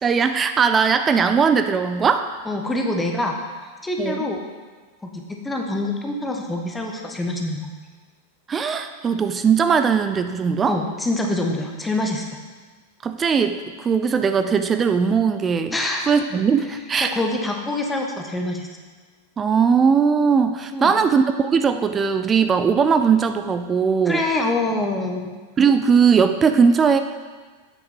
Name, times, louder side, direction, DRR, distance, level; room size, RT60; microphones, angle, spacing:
voice 1, 0.0-2.3 4.0-4.2 8.5-10.8 13.0-15.8 16.1-17.1 19.4-24.2 25.6-27.0, right 6 dB, 20° right, 8 dB, 0.4 m, -19 dB
voice 2, 2.5-3.4 3.8-4.4 5.0-7.7 10.7-12.3 15.7-16.1 17.0-18.7 20.7-20.9 24.1-25.3, left 2 dB, 10° left, 1 dB, 1.1 m, -25 dB
8.4 x 6.4 x 5.2 m, 1.4 s
figure-of-eight pair, 90°, 0 cm